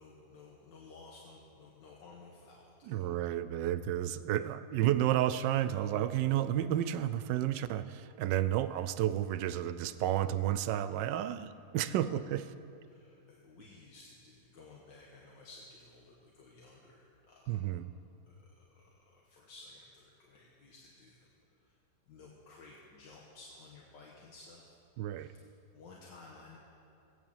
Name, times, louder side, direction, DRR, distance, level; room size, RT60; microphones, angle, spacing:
voice 1, 0.0-3.0 12.9-17.6 18.3-21.3 21.6-21.8 22.1-24.7 25.1-25.4 25.7-26.6, left 3 dB, 80° left, -2 dB, 2.0 m, -55 dB
voice 2, 2.8-12.5 17.5-17.9 25.0-25.3, right 12 dB, 80° right, 13 dB, 1.2 m, -31 dB
16.5 x 9.2 x 7.2 m, 2.7 s
omnidirectional pair, 1.9 m